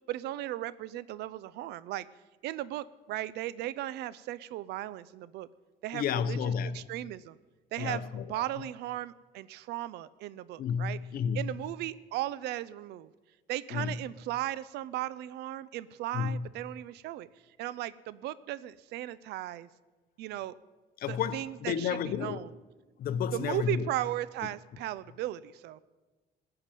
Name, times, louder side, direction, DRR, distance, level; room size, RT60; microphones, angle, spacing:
voice 1, 0.1-2.1 2.4-5.5 5.8-7.4 7.7-11.0 11.3-13.1 13.5-17.3 17.6-19.7 20.2-20.6 21.1-22.5 23.3-25.8, right 14 dB, 80° right, 0.5 m, -36 dB
voice 2, 5.9-6.9 7.8-8.3 8.6-8.7 10.6-11.5 13.7-14.0 16.1-16.5 21.0-22.4 23.0-23.9, left 7 dB, 60° left, 0.8 m, -31 dB
15.5 x 5.9 x 8.9 m
cardioid pair, 110°, 17 cm